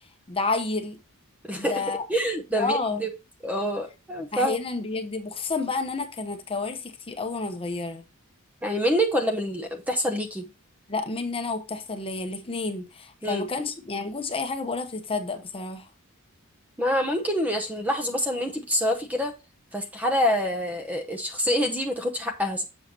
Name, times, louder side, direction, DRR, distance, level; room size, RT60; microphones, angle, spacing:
voice 1, 0.3-1.0 1.6-2.0 2.6-3.0 4.3-8.0 10.9-15.9, left 3 dB, 25° left, 0.9 m, -30 dB
voice 2, 1.4-1.8 2.1-3.1 3.4-4.6 8.6-10.5 13.2-13.5 16.8-19.3 19.7-22.6, equal, 5° right, 0.8 m, -26 dB
7.6 x 6.4 x 2.8 m
head